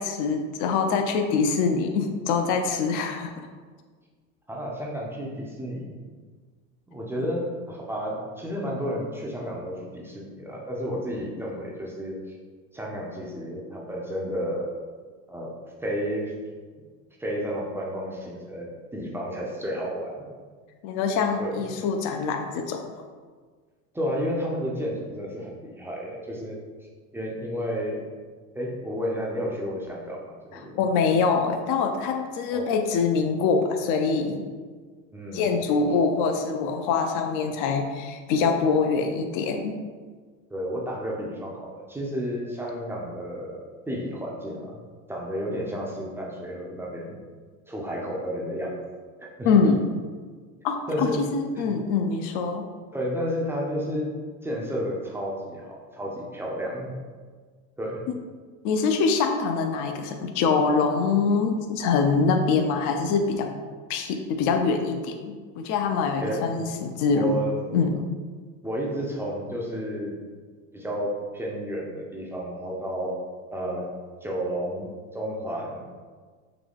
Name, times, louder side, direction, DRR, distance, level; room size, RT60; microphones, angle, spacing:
voice 1, 0.0-3.3 7.2-7.3 20.8-22.8 30.8-34.4 35.3-39.8 49.4-49.8 50.6-52.6 58.6-63.5 63.9-67.4 67.7-67.9, left 5 dB, 50° left, 5 dB, 0.5 m, -24 dB
voice 2, 4.5-6.0 6.9-12.3 12.7-14.7 15.3-15.6 15.8-16.3 17.2-20.3 21.4-21.6 23.9-26.6 27.1-28.1 28.5-30.8 32.5-32.7 35.1-35.5 40.5-44.8 45.1-47.2 47.7-48.7 49.2-49.5 50.9-51.2 52.9-57.0 57.8-58.1 66.2-66.5 67.1-67.7 68.6-70.2 70.7-73.2 73.5-73.9 74.2-75.8, equal, 5° right, -3 dB, 0.5 m, -31 dB
3.8 x 2.2 x 3.5 m, 1.5 s
supercardioid pair, 110°, 41 cm